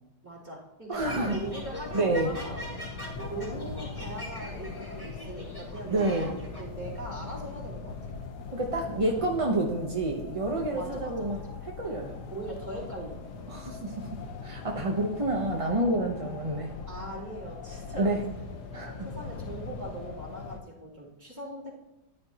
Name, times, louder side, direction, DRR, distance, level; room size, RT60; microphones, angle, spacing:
voice 1, 0.2-2.8 3.3-7.9 10.7-11.5 12.3-13.2 16.2-16.3 16.9-18.2 19.0-21.7, right 1 dB, 10° right, -8 dB, 3.3 m, -40 dB
sound 1, 0.9-6.6, equal, 15° left, 3.6 m, -42 dB
voice 2, 0.9-1.4 1.9-2.3 5.9-6.3 8.5-11.4 11.8-12.2 13.5-14.1 14.4-16.7 18.0-18.2 18.7-19.1, right 2 dB, 30° right, 0 dB, 0.7 m, -28 dB
sound 2, 1.0-20.6, left 4 dB, 85° left, 1.6 m, -41 dB
14.0 x 10.0 x 2.9 m, 0.93 s
omnidirectional pair, 1.7 m